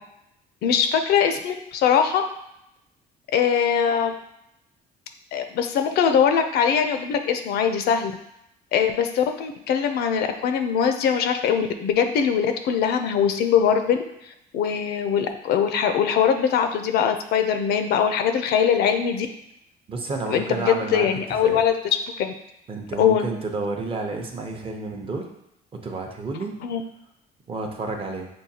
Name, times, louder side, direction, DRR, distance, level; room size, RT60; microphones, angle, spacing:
voice 1, 0.6-2.2 3.3-4.1 5.3-8.1 8.7-14.0 14.5-19.3 20.3-21.7 22.2-22.3 23.0-23.3 26.6-26.8, left 7 dB, 70° left, 7 dB, 0.5 m, -21 dB
voice 2, 19.9-21.1 21.4-21.6 22.7-25.3 25.8-26.6 27.5-28.3, right 3 dB, 35° right, 2 dB, 0.7 m, -30 dB
6.3 x 2.3 x 2.7 m, 0.82 s
cardioid pair, 110°, 17 cm